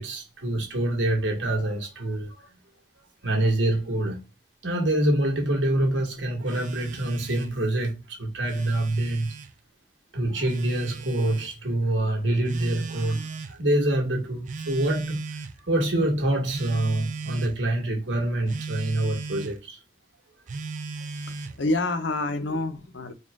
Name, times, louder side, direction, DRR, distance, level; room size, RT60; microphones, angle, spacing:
voice 1, 0.0-2.5 3.2-4.2 4.6-9.3 10.1-15.2 15.7-19.8, right 1 dB, 90° right, 1.5 m, -26 dB
Telephone, 6.5-7.6 8.3-9.5 10.5-11.5 12.5-13.6 14.5-15.6 16.5-17.6 18.5-19.6 20.5-21.6, right 4 dB, 45° right, 0.4 m, -37 dB
voice 2, 21.3-23.1, left 2 dB, 80° left, 0.8 m, -28 dB
4.3 x 2.4 x 3.5 m
head